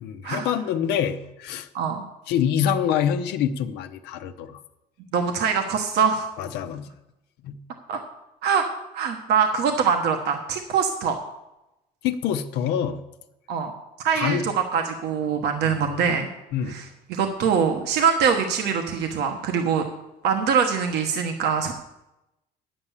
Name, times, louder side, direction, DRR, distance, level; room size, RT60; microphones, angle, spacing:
voice 1, 0.0-1.7 2.3-4.6 6.4-6.9 7.4-7.6 12.0-13.0 14.1-14.4 15.6-16.0 16.5-16.8, left 9 dB, 85° left, 7 dB, 0.8 m, -26 dB
voice 2, 5.1-6.3 7.9-8.0 8.4-8.6 8.9-11.2 13.5-13.7 14.0-16.3 16.7-16.8 17.1-19.8 20.2-21.7, right 6 dB, 75° right, 4 dB, 1.2 m, -23 dB
9.8 x 7.8 x 7.3 m, 0.94 s
cardioid pair, 110°, 17 cm